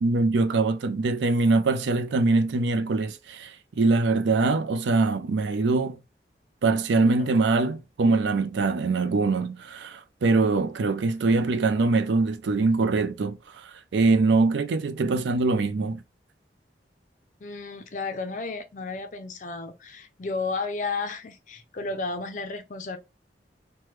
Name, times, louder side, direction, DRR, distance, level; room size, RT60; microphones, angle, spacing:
voice 1, 0.0-6.0 6.6-16.0, right 3 dB, 80° right, 0.4 m, -23 dB
voice 2, 17.4-23.0, left 3 dB, 45° left, 0.4 m, -33 dB
3.1 x 2.2 x 3.2 m
head